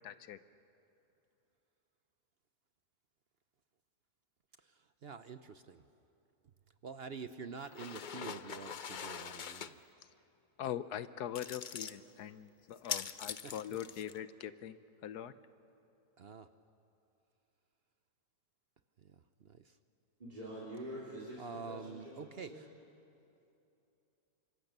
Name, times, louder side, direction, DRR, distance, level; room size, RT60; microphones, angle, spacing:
voice 1, 0.0-0.4 10.6-14.8 15.0-15.3, left 10 dB, 80° left, 13 dB, 1.3 m, -42 dB
voice 2, 4.6-5.8 6.8-9.8 13.3-13.8 16.2-16.5 19.0-19.8 21.4-22.7, right 5 dB, 55° right, 10 dB, 0.8 m, -47 dB
sound 1, 7.6-9.7 11.3-12.0 12.7-14.2, left 7 dB, 60° left, 0.5 m, -43 dB
voice 3, 20.2-22.6, right 1 dB, 25° right, -6 dB, 4.3 m, -46 dB
29.5 x 25.0 x 6.7 m, 2.8 s
omnidirectional pair, 1.7 m